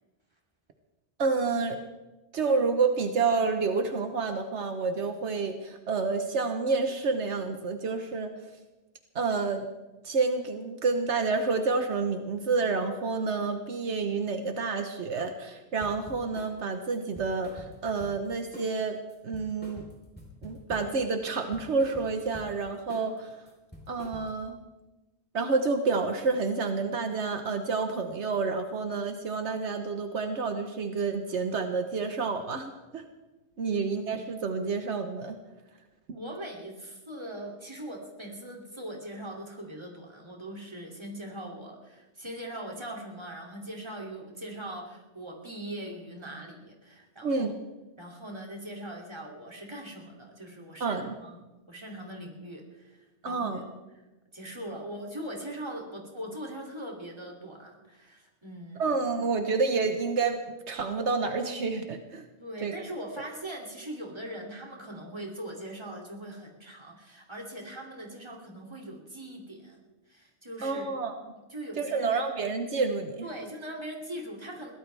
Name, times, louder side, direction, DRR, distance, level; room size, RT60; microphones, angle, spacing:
voice 1, 1.2-1.8 2.3-8.3 9.1-9.7 10.0-19.0 19.2-19.8 20.4-23.4 23.9-24.6 25.3-33.0 33.6-35.4 47.2-47.5 50.8-51.1 53.2-53.6 58.8-60.4 60.7-62.2 62.6-62.7 70.6-71.2 71.8-73.2, right 4 dB, 80° right, 6 dB, 1.4 m, -29 dB
sound 1, 15.8-16.6 16.9-18.3 18.5-18.8 19.1-21.0 21.3-22.5 22.9-23.2 23.5-24.5, left 1 dB, 10° left, 3.7 m, -47 dB
voice 2, 36.1-47.5 48.0-51.4 51.7-53.7 54.3-58.8 62.4-69.8 70.1-71.0 71.5-72.2 73.2-74.7, right 1 dB, 25° right, -1 dB, 2.8 m, -41 dB
22.5 x 17.0 x 3.4 m, 1.1 s
omnidirectional pair, 1.2 m